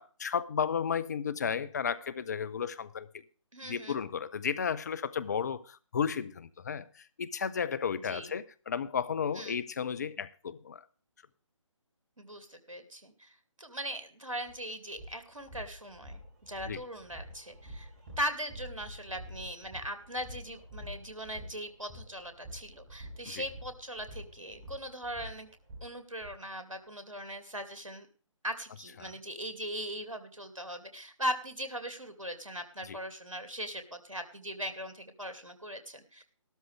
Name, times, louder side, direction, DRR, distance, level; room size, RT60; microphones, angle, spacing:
voice 1, 0.0-3.1 3.6-10.9 16.7-16.8 23.2-23.4 29.0-29.1 32.8-33.0, left 7 dB, 30° left, 0.7 m, -33 dB
voice 2, 3.5-4.0 8.0-8.3 9.3-9.6 12.2-17.9 18.2-25.5 25.8-28.1 28.4-36.2, equal, 80° right, 2.6 m, -39 dB
sound 1, 14.4-14.5 14.9-26.3, equal, 25° right, 4.6 m, -47 dB
14.0 x 12.5 x 3.4 m
figure-of-eight pair, 145°, 17 cm